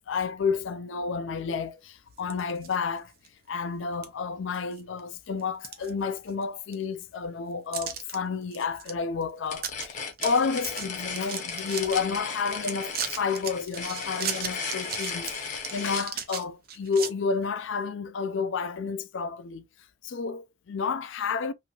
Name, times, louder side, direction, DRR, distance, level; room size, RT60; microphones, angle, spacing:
voice 1, 0.1-3.1 3.5-19.6 20.0-21.5, left 5 dB, 75° left, 0.4 m, -30 dB
sound 1, 2.2-2.8 3.2-3.3 4.0-4.1 4.5-5.0 5.4-6.4 6.7-6.8 7.7-8.2 8.5-8.9 9.2-9.3 9.6-9.9 10.1-12.0 12.5-17.1, right 7 dB, 50° right, 0.6 m, -36 dB
sound 2, 9.5-16.1, left 5 dB, 40° left, 0.7 m, -36 dB
2.9 x 2.7 x 2.3 m
head